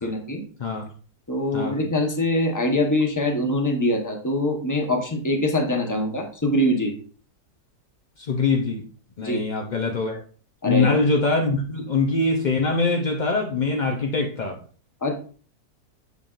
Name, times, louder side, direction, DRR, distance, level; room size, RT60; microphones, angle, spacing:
voice 1, 0.0-0.4 1.3-6.9 9.2-9.4 10.6-10.9 15.0-15.1, left 1 dB, 15° left, 3 dB, 0.7 m, -23 dB
voice 2, 8.2-8.8 9.2-10.2 10.7-14.6, left 3 dB, 70° left, 2 dB, 0.4 m, -23 dB
7.0 x 5.9 x 2.4 m, 0.41 s
omnidirectional pair, 1.7 m